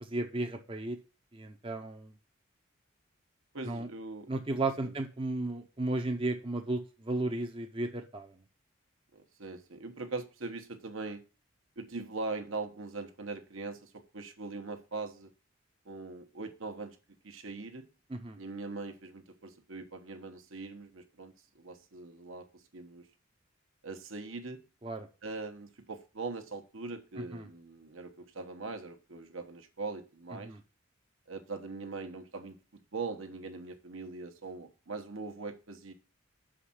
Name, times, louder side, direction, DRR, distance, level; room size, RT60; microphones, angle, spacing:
voice 1, 0.1-1.0 1.3-2.1 3.7-3.9 4.3-8.4 18.1-18.4 24.8-25.1 27.2-27.5 30.4-30.6, right 2 dB, 25° right, 4 dB, 0.6 m, -34 dB
voice 2, 3.5-4.3 4.8-4.9 9.1-11.2 11.8-15.3 15.8-17.0 17.2-17.9 18.4-23.1 23.8-24.6 25.2-30.5 31.3-32.6 32.9-35.9, right 3 dB, 75° right, 6 dB, 1.1 m, -41 dB
6.2 x 5.0 x 5.7 m, 0.33 s
head